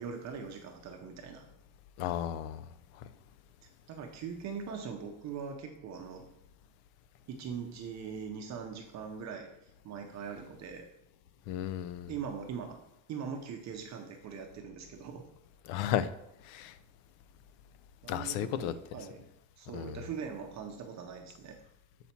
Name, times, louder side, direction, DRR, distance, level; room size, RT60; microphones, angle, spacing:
voice 1, 0.0-1.5 3.9-6.3 7.3-9.5 9.8-10.9 12.1-12.8 13.1-15.2 18.0-19.3 19.6-21.6, right 6 dB, 35° right, 3 dB, 0.7 m, -41 dB
voice 2, 2.0-2.6 11.5-12.1 15.7-16.1 16.4-16.7 18.1-18.7 19.7-20.0, left 10 dB, 75° left, 14 dB, 0.6 m, -33 dB
7.1 x 4.3 x 4.3 m, 0.81 s
cardioid pair, 165°, 48 cm